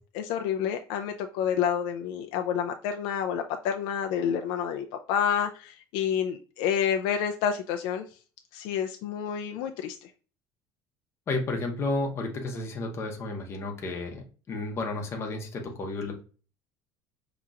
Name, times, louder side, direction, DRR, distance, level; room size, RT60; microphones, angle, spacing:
voice 1, 0.2-8.0 8.5-9.9, left 8 dB, 70° left, 4 dB, 0.4 m, -29 dB
voice 2, 11.3-16.2, left 2 dB, 30° left, 2 dB, 0.9 m, -32 dB
5.5 x 2.9 x 2.4 m, 0.37 s
cardioid pair, 155°, 9 cm